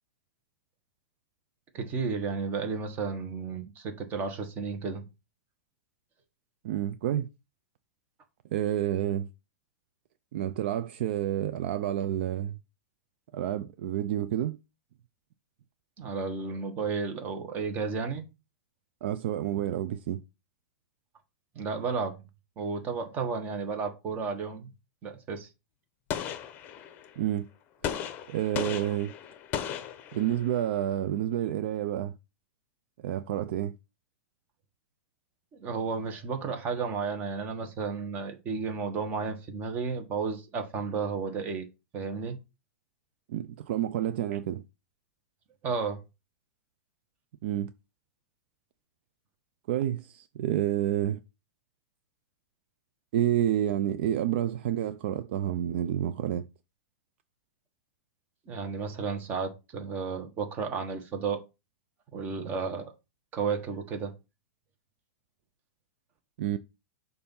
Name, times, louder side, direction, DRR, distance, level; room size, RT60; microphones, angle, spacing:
voice 1, 1.7-5.0 16.0-18.2 21.5-22.2 22.6-24.7 25.0-25.5 35.6-41.7 41.9-42.4 45.6-46.0 58.5-61.4 62.1-62.9 63.3-64.1, right 5 dB, 25° right, 1.4 m, -32 dB
voice 2, 6.6-7.3 8.5-9.3 10.3-12.6 13.3-14.6 19.0-20.2 27.2-27.5 27.8-27.9 28.3-29.1 30.1-32.1 33.0-33.8 43.3-44.6 47.4-47.7 49.7-51.2 53.1-56.5 66.4-66.6, right 11 dB, 55° right, 0.5 m, -29 dB
Gunshot gunfire, 26.1-27.2 27.8-30.6, left 9 dB, 30° left, 0.8 m, -36 dB
6.7 x 2.7 x 5.5 m
hypercardioid pair, 145°, 7 cm